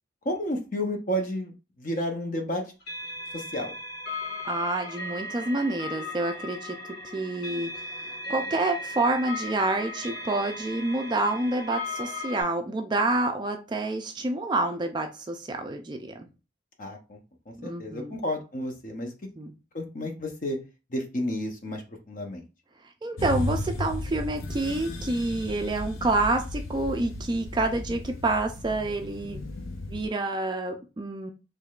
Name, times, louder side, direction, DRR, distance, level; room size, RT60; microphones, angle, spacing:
voice 1, 0.3-1.5 1.8-2.6 3.3-3.7 16.8-17.2 17.5-19.1 19.7-20.6 20.9-21.8 22.1-22.4, equal, 40° left, 4 dB, 0.7 m, -31 dB
sound 1, 2.8-12.4, left 2 dB, 70° left, 1.9 m, -37 dB
voice 2, 4.4-6.8 7.1-16.3 17.6-18.1 19.4-19.5 23.0-29.4 29.9-31.3, right 2 dB, 25° right, 5 dB, 0.3 m, -28 dB
sound 2, 23.2-30.1, left 1 dB, 90° left, 0.7 m, -35 dB
3.6 x 3.1 x 2.4 m, 0.31 s
head